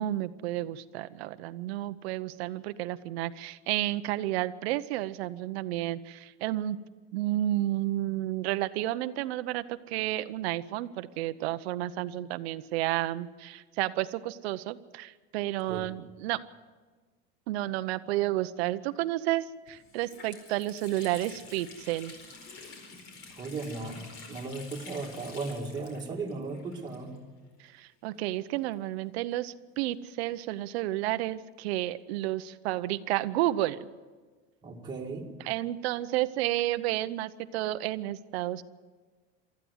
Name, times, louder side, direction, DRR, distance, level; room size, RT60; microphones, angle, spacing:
voice 1, 0.0-6.8 7.1-16.4 17.5-22.1 27.6-33.9 35.4-38.6, right 15 dB, 85° right, 12 dB, 0.8 m, -31 dB
Water tap faucet, 19.2-19.3 19.7-27.4 27.6-27.7 28.6-30.1, left 4 dB, 40° left, 4.5 m, -49 dB
voice 2, 23.3-27.2 34.6-35.3, right 3 dB, 15° right, -1 dB, 2.0 m, -36 dB
24.0 x 13.5 x 8.0 m, 1.4 s
cardioid pair, 175°, 31 cm